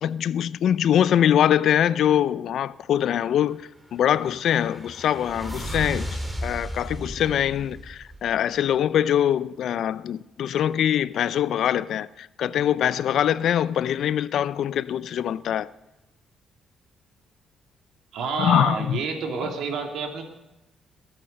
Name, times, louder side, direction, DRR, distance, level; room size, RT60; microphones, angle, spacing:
voice 1, 0.0-15.7 18.4-19.0, left 10 dB, 70° left, 0.5 m, -23 dB
sound 1, 3.7-8.7, equal, 5° right, 2.2 m, -35 dB
voice 2, 18.1-20.2, right 5 dB, 80° right, 2.7 m, -29 dB
21.5 x 8.8 x 5.4 m
cardioid pair, 90°, 0 cm